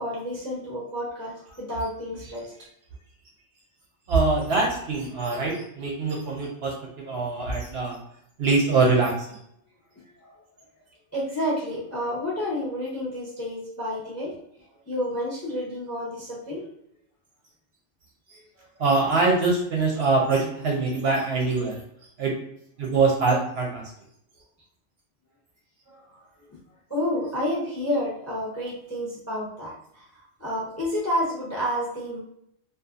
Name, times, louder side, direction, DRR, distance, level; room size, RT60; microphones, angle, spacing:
voice 1, 0.0-2.7 11.1-14.3 14.9-16.6 25.9-26.0 26.9-32.2, equal, 20° left, -6 dB, 0.5 m, -30 dB
voice 2, 4.1-8.0 8.4-9.4 18.8-21.8 22.2-22.3 22.8-23.8, right 3 dB, 65° right, -1 dB, 0.7 m, -23 dB
2.6 x 2.3 x 2.3 m, 0.73 s
omnidirectional pair, 1.3 m